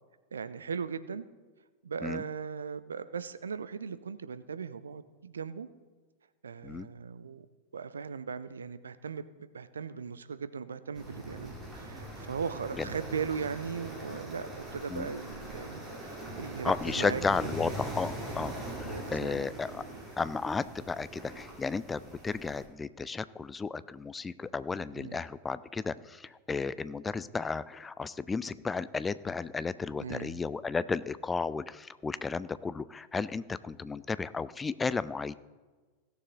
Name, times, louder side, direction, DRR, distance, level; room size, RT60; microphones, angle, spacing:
voice 1, 0.3-1.3 1.8-5.7 6.4-7.5 7.7-17.5 18.8-19.5 24.9-25.2 30.0-30.4, right 6 dB, 70° right, 13 dB, 0.5 m, -38 dB
sound 1, 10.9-22.7, right 1 dB, 15° right, 2.8 m, -41 dB
voice 2, 16.6-19.8 20.2-35.3, left 4 dB, 15° left, 16 dB, 0.3 m, -33 dB
16.5 x 6.8 x 3.9 m, 1.4 s
figure-of-eight pair, 90°, 0 cm